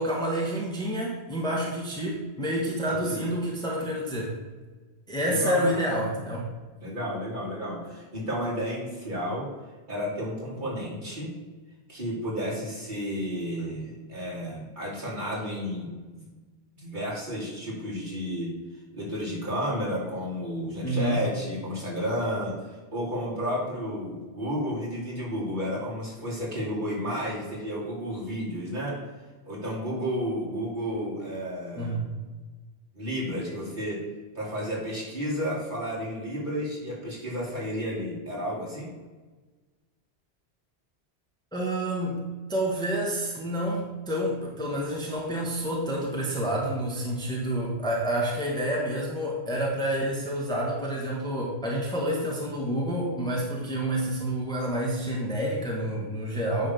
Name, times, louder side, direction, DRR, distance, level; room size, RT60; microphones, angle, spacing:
voice 1, 0.0-4.3 5.1-6.5 20.8-21.2 31.8-32.0 41.5-42.2 42.5-56.7, right 1 dB, 5° left, -3 dB, 1.3 m, -28 dB
voice 2, 2.9-3.2 5.2-5.9 6.8-9.5 9.9-11.3 11.9-16.3 16.8-18.5 18.9-29.0 29.5-32.0 32.9-34.0 34.3-38.9, equal, 45° right, -6 dB, 3.0 m, -32 dB
9.6 x 3.3 x 6.8 m, 1.3 s
omnidirectional pair, 1.1 m